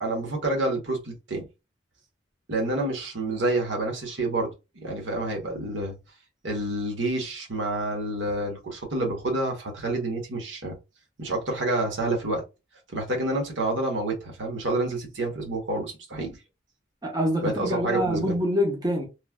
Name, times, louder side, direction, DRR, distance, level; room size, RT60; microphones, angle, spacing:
voice 1, 0.0-1.5 2.5-4.5 4.8-5.9 6.4-10.8 11.2-12.4 12.9-16.4 17.4-18.3, right 2 dB, 75° right, 1.0 m, -28 dB
voice 2, 17.0-19.1, equal, 20° right, 0.7 m, -25 dB
3.1 x 2.2 x 2.2 m
head